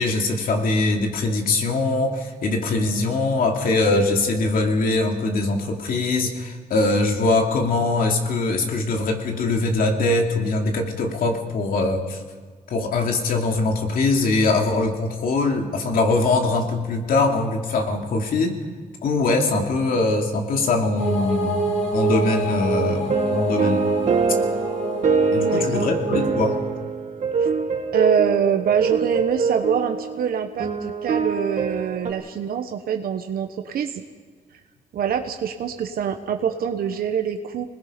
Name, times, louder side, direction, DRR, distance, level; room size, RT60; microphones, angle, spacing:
voice 1, 0.0-12.2 12.7-18.6 19.0-23.9 25.3-26.6, left 2 dB, 65° left, 2 dB, 2.7 m, -22 dB
sound 1, 21.0-26.6, right 1 dB, 45° left, 7.9 m, -27 dB
sound 2, 22.9-32.1, right 5 dB, 50° right, 2.0 m, -24 dB
voice 2, 25.4-25.9 27.4-27.5 27.9-34.0 34.9-37.7, right 8 dB, 70° right, 6 dB, 1.2 m, -24 dB
26.5 x 20.0 x 5.2 m, 1.5 s
wide cardioid pair, 150°, 16 cm